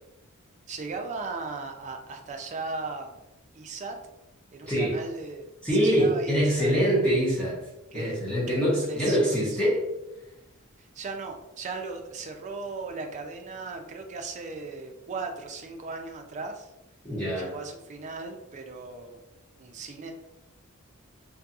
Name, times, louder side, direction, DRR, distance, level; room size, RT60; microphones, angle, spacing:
voice 1, 0.7-3.2 3.5-4.0 4.5-5.5 5.7-6.7 7.9-8.2 8.5-8.6 8.9-9.6 10.8-16.7 17.4-19.2 19.6-20.1, right 3 dB, 35° right, 4 dB, 0.3 m, -37 dB
voice 2, 4.6-5.0 5.6-7.6 7.9-9.8 17.0-17.5, equal, 5° left, -9 dB, 0.7 m, -24 dB
2.7 x 2.6 x 2.4 m, 0.95 s
head